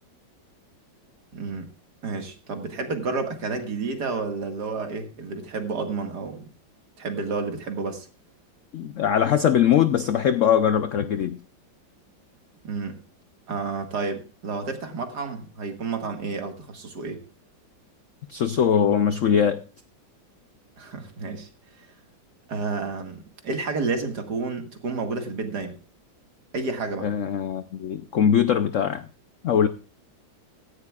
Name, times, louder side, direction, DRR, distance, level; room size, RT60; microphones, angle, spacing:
voice 1, 1.3-1.7 2.0-6.5 7.0-8.1 12.6-13.0 13.5-17.2 20.8-21.5 21.8-21.9 22.5-25.8 26.5-27.1, right 4 dB, 55° right, 2.3 m, -30 dB
voice 2, 8.7-11.4 18.3-19.6 27.0-29.1 29.4-29.7, left 8 dB, 70° left, 0.7 m, -21 dB
16.0 x 14.5 x 2.4 m
omnidirectional pair, 2.1 m